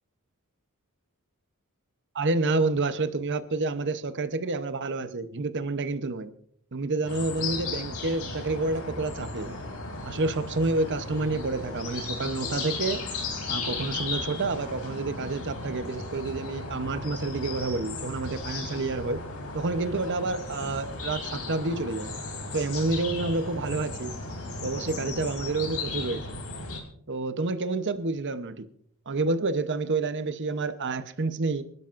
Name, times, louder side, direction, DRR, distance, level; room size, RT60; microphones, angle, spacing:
voice 1, 2.1-6.3 6.7-9.6 10.0-13.0 13.5-19.2 19.5-22.1 22.5-24.1 24.6-26.4 27.1-28.6 29.1-31.6, right 3 dB, 55° right, 0.9 m, -29 dB
sound 1, 7.0-26.8, left 3 dB, 70° left, 3.1 m, -35 dB
26.5 x 12.0 x 2.6 m
head